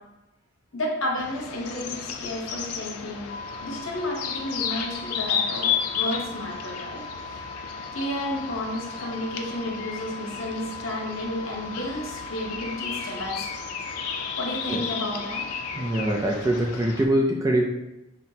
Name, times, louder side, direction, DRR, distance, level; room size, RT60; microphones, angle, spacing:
voice 1, 0.7-3.3 3.6-7.4 7.9-13.4 14.4-15.4, left 1 dB, 60° left, -1 dB, 0.8 m, -32 dB
sound 1, 1.2-17.1, left 7 dB, 85° left, 0.4 m, -33 dB
sound 2, 3.3-16.0, left 2 dB, 20° left, 1.2 m, -41 dB
voice 2, 15.8-17.6, right 1 dB, 15° right, 0 dB, 0.3 m, -23 dB
5.6 x 2.1 x 2.7 m, 0.95 s
head